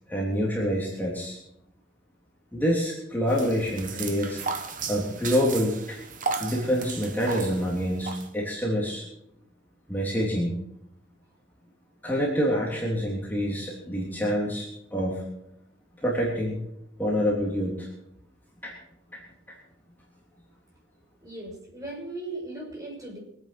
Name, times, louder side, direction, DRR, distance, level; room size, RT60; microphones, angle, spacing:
voice 1, 0.1-1.4 2.5-4.4 4.9-6.0 6.4-9.0 9.9-10.5 12.0-14.7 14.9-15.2 16.0-16.6 17.0-17.9 18.6-18.7 19.1-19.2, equal, 10° left, -5 dB, 3.3 m, -27 dB
sound 1, 3.3-8.3, right 4 dB, 45° right, 1.5 m, -35 dB
voice 2, 21.2-23.2, right 2 dB, 20° right, -1 dB, 6.1 m, -37 dB
24.5 x 9.2 x 6.1 m, 0.77 s
head